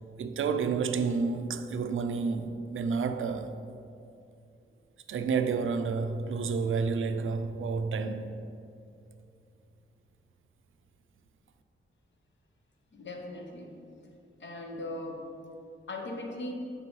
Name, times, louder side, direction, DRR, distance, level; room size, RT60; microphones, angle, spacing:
voice 1, 0.2-3.6 5.1-8.3, right 5 dB, 75° right, 0.4 m, -30 dB
voice 2, 12.9-13.7 14.4-15.3 15.9-16.5, left 1 dB, 65° left, 0.8 m, -39 dB
8.1 x 5.4 x 3.1 m
wide cardioid pair, 135°, 21 cm